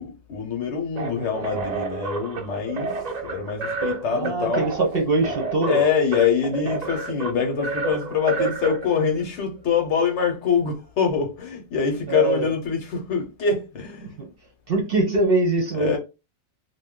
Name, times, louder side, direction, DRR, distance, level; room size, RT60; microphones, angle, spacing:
voice 1, 0.0-4.6 5.6-14.2 15.8-16.0, left 6 dB, 60° left, 1.0 m, -24 dB
sound 1, 1.0-9.2, right 4 dB, 70° right, 0.4 m, -30 dB
voice 2, 4.1-5.8 12.1-12.5 14.2-14.3 14.7-16.0, right 2 dB, 55° right, 0.7 m, -22 dB
2.6 x 2.2 x 3.6 m
omnidirectional pair, 1.4 m